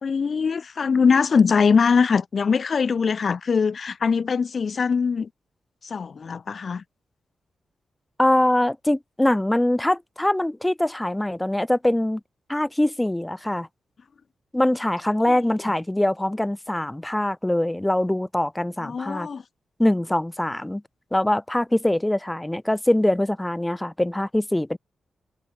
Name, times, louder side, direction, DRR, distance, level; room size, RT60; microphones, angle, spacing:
voice 1, 0.0-5.3 5.8-6.8 18.8-19.4, left 5 dB, 50° left, 1.6 m, -22 dB
voice 2, 8.2-12.2 12.5-13.7 14.5-19.3 19.8-20.8 21.1-24.8, left 1 dB, 10° left, 6.8 m, -23 dB
wide cardioid pair, 115°, 0 cm